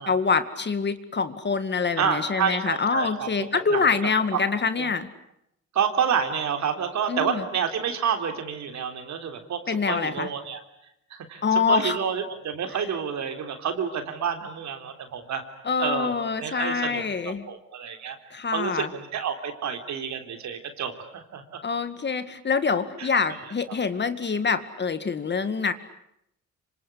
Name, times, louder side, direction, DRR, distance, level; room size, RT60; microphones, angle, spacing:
voice 1, 0.1-5.1 7.1-7.4 9.7-10.3 11.4-12.0 15.7-17.4 18.3-18.9 21.6-25.7, left 5 dB, 35° left, 10 dB, 2.1 m, -25 dB
voice 2, 2.0-3.3 3.7-3.9 4.3-4.4 5.7-9.6 9.9-10.6 11.1-15.4 15.8-16.1 16.4-18.2 18.5-21.4 23.0-23.1 23.7-23.8, right 7 dB, 65° right, 6 dB, 3.7 m, -29 dB
26.5 x 26.0 x 8.5 m, 0.78 s
cardioid pair, 90°, 30 cm